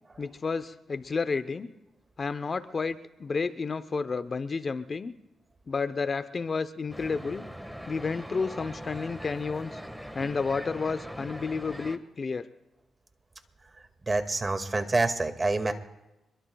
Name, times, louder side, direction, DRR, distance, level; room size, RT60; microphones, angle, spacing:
voice 1, 0.2-1.7 2.2-5.1 5.7-7.4 7.9-9.8 10.1-12.5, left 4 dB, 45° left, 12 dB, 0.8 m, -31 dB
sound 1, 6.9-12.0, equal, ahead, 1.6 m, -41 dB
voice 2, 14.0-15.7, right 3 dB, 30° right, 7 dB, 2.0 m, -27 dB
26.0 x 22.5 x 2.4 m, 0.97 s
cardioid pair, 70°, 0 cm